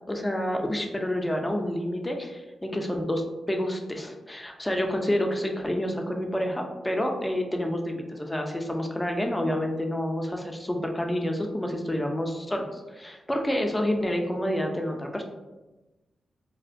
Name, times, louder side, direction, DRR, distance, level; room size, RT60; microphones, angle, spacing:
voice 1, 0.1-15.2, left 1 dB, 15° left, 3 dB, 0.4 m, -28 dB
2.4 x 2.1 x 2.4 m, 1.1 s
cardioid pair, 75°, 0 cm